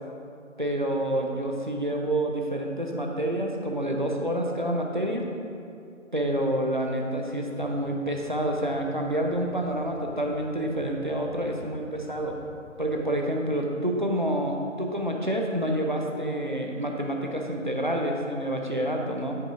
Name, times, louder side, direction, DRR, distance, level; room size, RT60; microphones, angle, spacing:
voice 1, 0.6-5.3 6.1-12.4 12.8-19.4, right 1 dB, 40° right, 0 dB, 0.7 m, -28 dB
sound 1, 7.6-13.0, left 1 dB, 55° left, 1.5 m, -49 dB
9.4 x 9.4 x 2.5 m, 2.5 s
figure-of-eight pair, 170°, 40 cm